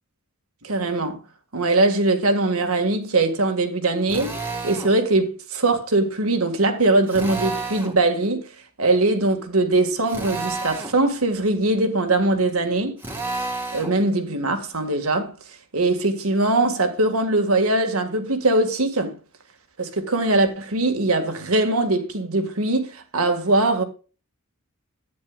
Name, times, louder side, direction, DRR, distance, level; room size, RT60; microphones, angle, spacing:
voice 1, 0.6-1.2 1.5-4.4 4.6-8.4 8.8-13.0 13.7-15.3 15.7-19.2 19.8-23.8, right 2 dB, 80° right, 1.8 m, -21 dB
Drill, 4.1-4.9 7.1-8.0 10.1-11.0 13.0-14.0, right 3 dB, 10° right, 1.9 m, -30 dB
13.5 x 9.5 x 2.3 m
head